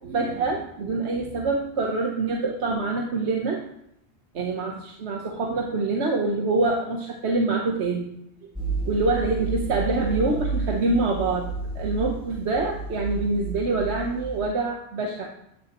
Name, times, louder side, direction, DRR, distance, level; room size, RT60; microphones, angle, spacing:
voice 1, 0.0-3.6 4.3-8.1 8.9-11.5 11.7-15.3, right 3 dB, 80° right, 1 dB, 1.3 m, -25 dB
sound 1, 8.6-14.4, right 3 dB, 5° right, 1.9 m, -31 dB
13.0 x 9.7 x 3.0 m, 0.78 s
omnidirectional pair, 1.1 m